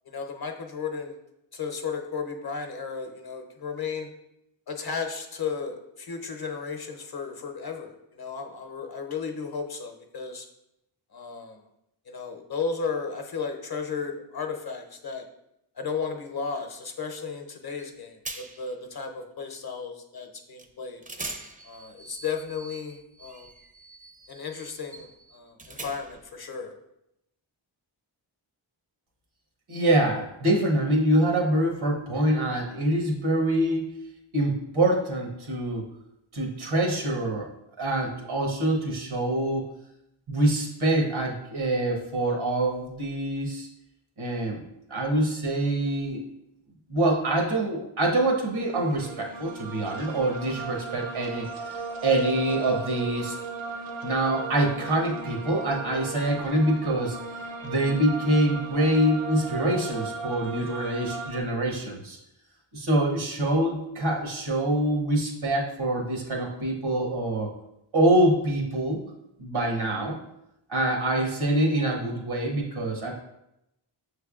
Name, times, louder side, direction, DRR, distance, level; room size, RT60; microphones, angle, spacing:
voice 1, 0.1-1.2 1.5-4.1 4.7-10.5 11.1-11.6 12.1-15.2 15.8-21.0 21.6-23.5 24.3-26.7, left 5 dB, 50° left, 4 dB, 0.8 m, -34 dB
sound 1, 17.8-17.9 18.2-18.8 20.6-20.7 21.0-26.3, right 2 dB, 20° right, 0.5 m, -42 dB
voice 2, 29.7-34.0 34.3-35.9 36.3-37.5 37.8-39.6 40.3-43.7 44.2-44.6 44.9-46.2 46.9-51.5 52.0-53.4 54.0-57.2 57.6-62.2 62.7-67.5 67.9-69.0 69.4-70.2 70.7-73.1, right 1 dB, 85° right, 0 dB, 1.1 m, -25 dB
sound 2, 48.5-61.4, right 4 dB, 65° right, 0.7 m, -37 dB
6.2 x 3.3 x 2.4 m, 0.83 s
cardioid pair, 45°, 48 cm